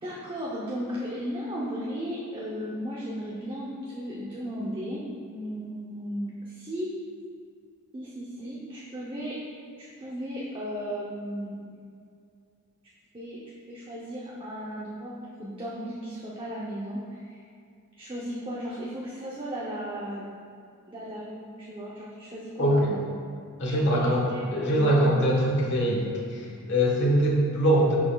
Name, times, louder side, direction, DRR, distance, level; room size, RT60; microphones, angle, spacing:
voice 1, 0.0-7.0 7.9-9.4 9.8-11.7 13.1-13.4 13.7-17.4 18.0-20.3 20.9-23.1 23.7-25.1, equal, 25° right, -5 dB, 0.6 m, -35 dB
voice 2, 22.6-22.9 23.6-24.3 24.5-27.9, equal, 55° left, -3 dB, 1.2 m, -23 dB
10.5 x 4.2 x 2.3 m, 2.4 s
head